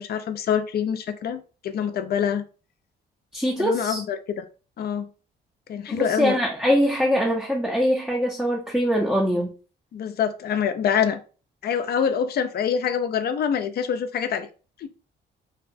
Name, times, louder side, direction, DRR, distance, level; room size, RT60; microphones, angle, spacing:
voice 1, 0.0-2.4 3.6-4.4 4.8-5.1 5.7-6.4 9.9-11.2 11.6-14.5 14.8-14.9, left 8 dB, 55° left, 0.4 m, -25 dB
voice 2, 3.3-4.0 5.9-9.5, equal, 5° right, 0.5 m, -23 dB
2.7 x 2.0 x 2.5 m
cardioid pair, 90°, 20 cm